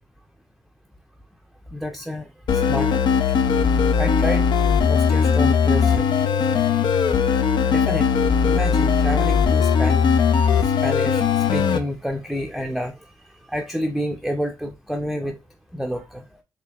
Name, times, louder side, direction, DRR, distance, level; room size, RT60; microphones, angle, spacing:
voice 1, 1.7-2.3 2.7-3.2 4.0-4.5 4.9-6.1 7.7-8.1 8.5-10.1 10.6-11.3 11.5-12.9 13.5-15.4 15.7-16.2, equal, ahead, 0.5 m, -29 dB
sound 1, 2.5-11.8, left 6 dB, 75° left, 0.5 m, -19 dB
4.4 x 2.9 x 2.3 m
cardioid pair, 85°, 8 cm